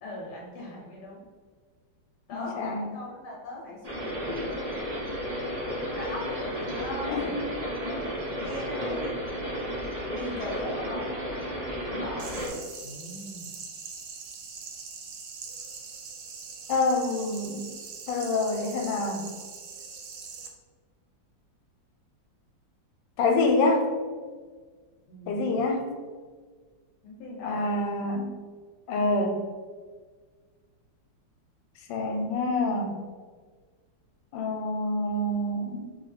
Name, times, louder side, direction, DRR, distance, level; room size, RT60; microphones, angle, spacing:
voice 1, 0.0-1.2 2.3-4.7 5.9-9.1 10.1-12.5 12.8-13.5 25.1-25.7 27.0-27.7, left 2 dB, 70° left, -3 dB, 1.2 m, -39 dB
voice 2, 2.3-2.9 7.1-7.3 16.7-17.6 18.1-19.2 23.2-23.8 25.3-25.9 27.4-28.3 28.9-29.4 31.9-32.9 34.3-35.9, left 2 dB, 90° left, 3 dB, 1.3 m, -26 dB
sound 1, 3.8-12.5, equal, 55° right, 0.4 m, -33 dB
sound 2, 12.2-20.5, right 5 dB, 75° right, 1.1 m, -42 dB
2.9 x 2.6 x 4.0 m, 1.5 s
omnidirectional pair, 2.0 m